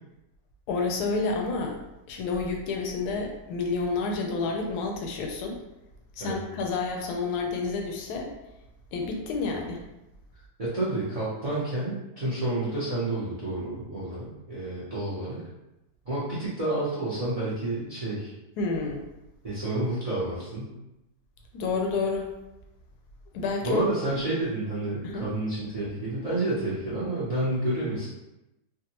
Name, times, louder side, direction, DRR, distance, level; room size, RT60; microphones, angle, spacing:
voice 1, 0.7-1.8 2.1-5.6 6.2-8.3 8.9-9.8 18.6-19.0 21.5-22.3 23.3-23.8 25.0-25.3, left 4 dB, 80° left, 2 dB, 1.1 m, -29 dB
voice 2, 10.6-15.4 16.0-18.3 19.4-20.7 23.6-28.1, right 2 dB, 40° right, -9 dB, 0.5 m, -29 dB
3.5 x 2.1 x 2.8 m, 0.93 s
omnidirectional pair, 1.7 m